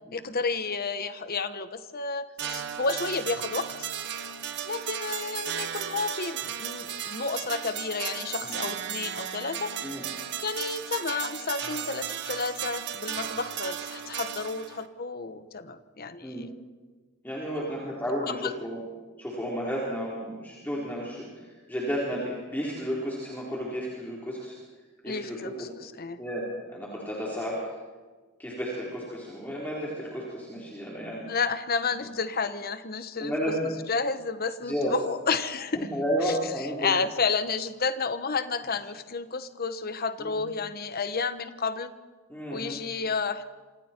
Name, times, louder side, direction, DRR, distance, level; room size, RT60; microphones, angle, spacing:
voice 1, 0.1-3.9 4.6-9.7 10.4-16.5 17.6-17.7 18.4-18.5 25.0-26.2 31.3-33.3 33.9-35.9 36.2-36.3 36.8-41.9 42.5-43.5, left 4 dB, 45° left, 11 dB, 1.2 m, -31 dB
sound 1, 2.4-14.9, right 9 dB, 55° right, 1.3 m, -35 dB
voice 2, 17.2-18.8 19.2-24.6 25.0-25.7 26.2-27.6 28.4-31.3 32.0-32.1 33.2-33.7 34.6-35.0 35.7-36.9 40.2-40.4 42.3-42.8, equal, 10° left, -5 dB, 4.0 m, -32 dB
27.0 x 26.5 x 4.5 m, 1.4 s
head